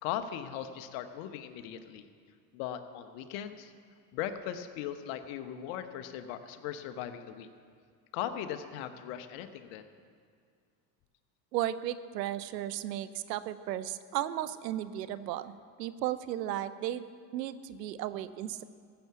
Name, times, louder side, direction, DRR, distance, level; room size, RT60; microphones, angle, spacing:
voice 1, 0.0-2.1 2.5-3.7 4.1-7.5 8.1-9.9, left 10 dB, 70° left, 10 dB, 1.1 m, -38 dB
voice 2, 11.5-15.5 15.8-17.0 17.3-18.6, right 12 dB, 90° right, 14 dB, 0.7 m, -35 dB
14.5 x 6.9 x 8.2 m, 2.2 s
hypercardioid pair, 80°, 48 cm